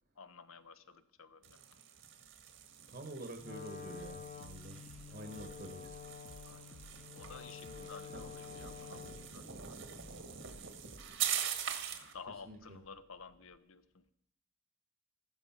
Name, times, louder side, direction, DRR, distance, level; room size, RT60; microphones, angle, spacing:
voice 1, 0.2-1.6 6.4-6.8 7.1-9.9 11.6-14.1, left 5 dB, 85° left, 12 dB, 1.0 m, -53 dB
sound 1, 1.4-12.1, right 9 dB, 70° right, 1.8 m, -43 dB
voice 2, 2.9-6.0 7.8-7.9 12.3-12.8, right 1 dB, 45° right, 6 dB, 1.3 m, -48 dB
Wind instrument woodwind instrument, 3.4-9.4, left 7 dB, 35° left, 1.1 m, -49 dB
sound 2, 3.9-13.6, equal, 5° left, 0.9 m, -58 dB
15.0 x 13.0 x 5.8 m, 0.69 s
head